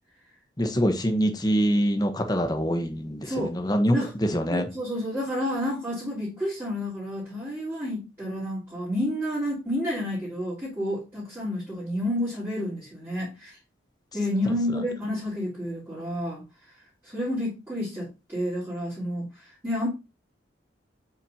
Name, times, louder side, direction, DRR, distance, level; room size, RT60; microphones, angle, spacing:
voice 1, 0.6-4.1 4.3-4.7, equal, 20° left, 1.1 m, -24 dB
voice 2, 3.2-3.5 3.9-4.1 4.5-13.6 14.1-16.4 17.0-19.9, left 1 dB, 10° right, 3.4 m, -30 dB
8.2 x 5.8 x 2.8 m
head